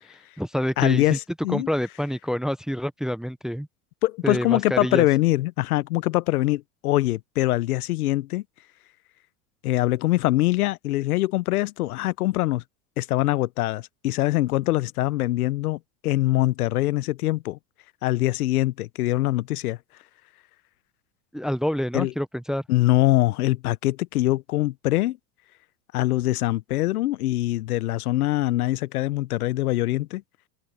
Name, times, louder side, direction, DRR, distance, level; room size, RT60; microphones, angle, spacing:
voice 1, 0.1-1.2 1.5-3.7 4.2-5.1 21.3-22.6, equal, ahead, 0.6 m, -27 dB
voice 2, 0.8-1.7 4.0-8.4 9.6-12.6 13.0-17.6 18.0-19.8 21.9-22.1 22.7-25.2 25.9-30.2, left 17 dB, 85° left, 0.8 m, -23 dB
open air
supercardioid pair, 130°, 43 cm